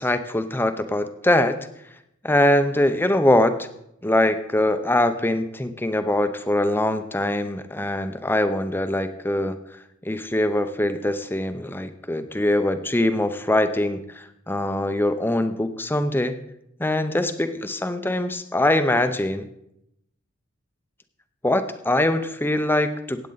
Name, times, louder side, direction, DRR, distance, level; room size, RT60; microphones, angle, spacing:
voice 1, 0.0-1.6 2.2-3.7 4.0-9.6 10.0-16.4 16.8-19.5 21.4-23.3, left 1 dB, 10° left, 10 dB, 0.6 m, -23 dB
16.0 x 8.8 x 4.0 m, 0.81 s
head